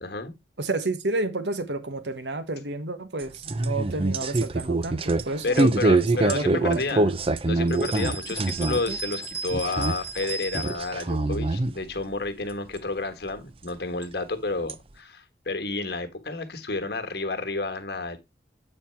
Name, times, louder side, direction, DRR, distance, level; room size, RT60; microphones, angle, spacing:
voice 1, 0.0-0.4 5.4-7.1 7.4-18.2, left 3 dB, 60° left, 1.4 m, -30 dB
voice 2, 0.6-7.0, right 2 dB, 80° right, 1.2 m, -31 dB
sound 1, 3.2-9.0 9.2-10.3 10.5-11.7 12.8-12.9 14.0-14.1 14.7-14.8, right 2 dB, 30° right, 0.5 m, -24 dB
sound 2, 7.7-11.0, right 3 dB, 15° left, 1.2 m, -36 dB
8.6 x 4.4 x 4.4 m
head